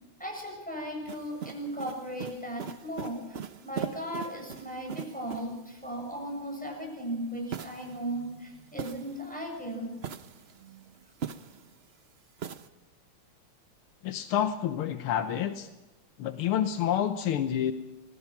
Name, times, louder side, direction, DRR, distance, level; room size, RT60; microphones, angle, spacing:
voice 1, 0.2-9.9, right 1 dB, 5° left, 0 dB, 7.2 m, -37 dB
sound 1, 1.1-5.7 7.5-9.4 9.9-11.8 12.4-12.7, right 7 dB, 90° right, 0.5 m, -41 dB
voice 2, 14.0-15.7 16.2-17.7, left 10 dB, 90° left, 8 dB, 1.8 m, -28 dB
25.5 x 20.0 x 6.0 m, 1.0 s
omnidirectional pair, 2.3 m